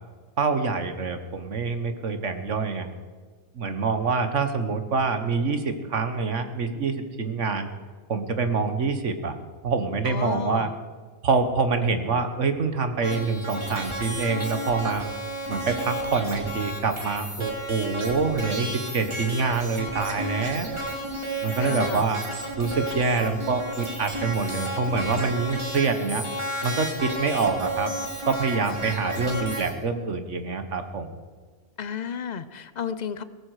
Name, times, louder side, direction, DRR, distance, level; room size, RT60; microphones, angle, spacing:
voice 1, 0.4-2.9 3.5-7.7 8.1-9.4 9.6-10.7 11.2-15.1 15.5-20.8 21.4-22.2 22.6-26.2 26.6-27.9 28.2-31.2, right 4 dB, 55° right, 9 dB, 1.5 m, -26 dB
voice 2, 10.1-10.7 21.6-22.0 31.8-33.2, left 7 dB, 55° left, 13 dB, 0.5 m, -32 dB
sound 1, 13.0-29.7, right 1 dB, 20° right, 2.6 m, -32 dB
17.5 x 14.5 x 4.9 m, 1.5 s
omnidirectional pair, 1.5 m